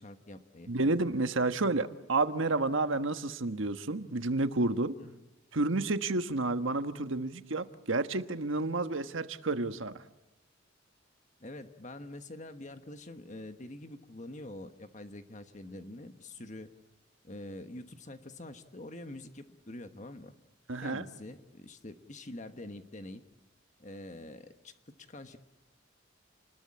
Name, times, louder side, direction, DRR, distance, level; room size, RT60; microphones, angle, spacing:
voice 1, 0.0-0.7 5.0-5.2 11.4-16.7 17.2-20.3 20.8-23.2 23.8-24.7 25.1-25.4, left 1 dB, 35° left, 8 dB, 1.3 m, -45 dB
voice 2, 0.7-5.0 5.5-10.0 20.7-21.0, right 2 dB, 75° right, 10 dB, 1.3 m, -30 dB
29.5 x 20.5 x 8.6 m, 1.0 s
head